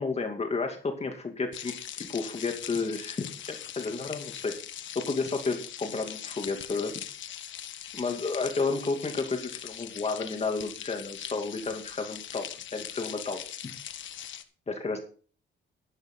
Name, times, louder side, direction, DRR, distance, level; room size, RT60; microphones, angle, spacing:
voice 1, 0.0-4.5 4.9-6.9 8.0-13.4 14.7-15.0, left 4 dB, 30° left, 4 dB, 2.7 m, -32 dB
sound 1, 1.5-14.4, left 10 dB, 70° left, 1.5 m, -41 dB
12.0 x 12.0 x 3.9 m, 0.40 s
cardioid pair, 90°, 20 cm